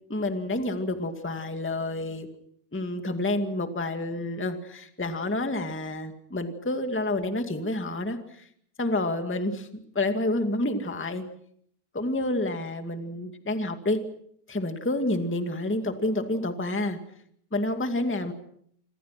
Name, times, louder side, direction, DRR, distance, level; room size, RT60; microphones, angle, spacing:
voice 1, 0.1-2.3 2.7-8.4 8.8-9.7 9.9-11.2 11.9-14.0 14.5-17.0 17.5-18.3, left 2 dB, 5° left, 6 dB, 1.7 m, -29 dB
27.5 x 27.0 x 6.0 m, 0.66 s
omnidirectional pair, 3.3 m